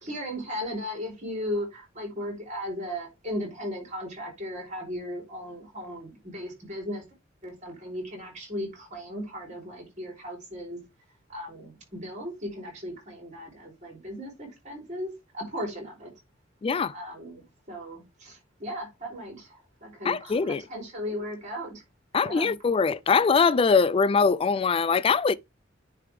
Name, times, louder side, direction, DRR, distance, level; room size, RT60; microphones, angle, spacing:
voice 1, 0.0-7.0 7.4-10.8 11.3-16.1 16.9-21.8 22.2-22.5, equal, 40° right, 3.4 m, -36 dB
voice 2, 16.6-16.9 20.1-20.6 22.1-25.3, left 5 dB, 30° left, 0.3 m, -22 dB
9.9 x 3.4 x 3.3 m
head